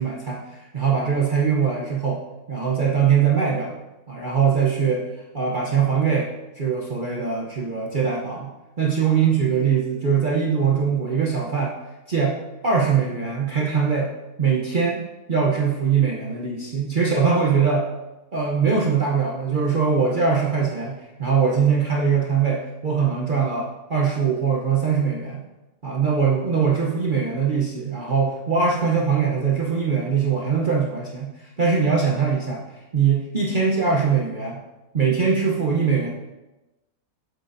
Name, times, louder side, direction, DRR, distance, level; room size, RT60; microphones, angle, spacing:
voice 1, 0.0-2.2 2.5-3.7 4.1-6.3 6.5-8.5 8.8-11.7 12.1-12.4 12.6-14.1 14.4-15.0 15.3-17.9 18.3-25.4 25.8-32.6 32.9-34.6 34.9-36.1, right 6 dB, 40° right, -3 dB, 0.8 m, -22 dB
8.2 x 7.8 x 2.6 m, 1.0 s
omnidirectional pair, 1.6 m